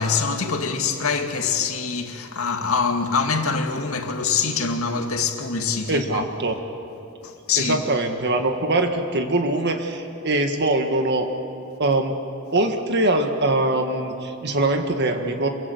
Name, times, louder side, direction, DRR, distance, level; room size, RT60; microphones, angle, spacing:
voice 1, 0.0-6.2 7.2-7.8, left 5 dB, 75° left, 2.2 m, -24 dB
voice 2, 5.9-6.6 7.6-11.3 11.8-12.1 12.5-15.5, right 2 dB, 55° right, 1.8 m, -22 dB
27.0 x 23.0 x 8.0 m
head